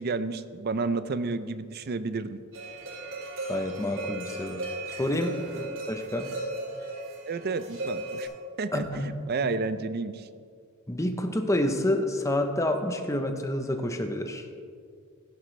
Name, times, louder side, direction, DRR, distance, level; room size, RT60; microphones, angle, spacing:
voice 1, 0.0-2.4 7.3-8.3 8.6-10.3, right 3 dB, 45° right, 12 dB, 0.5 m, -31 dB
sound 1, 2.5-8.2, right 2 dB, 65° right, 2.8 m, -36 dB
voice 2, 3.5-5.4 5.9-6.3 8.7-9.1 10.9-14.5, left 1 dB, 15° left, 5 dB, 0.8 m, -28 dB
15.5 x 11.0 x 3.3 m, 2.2 s
head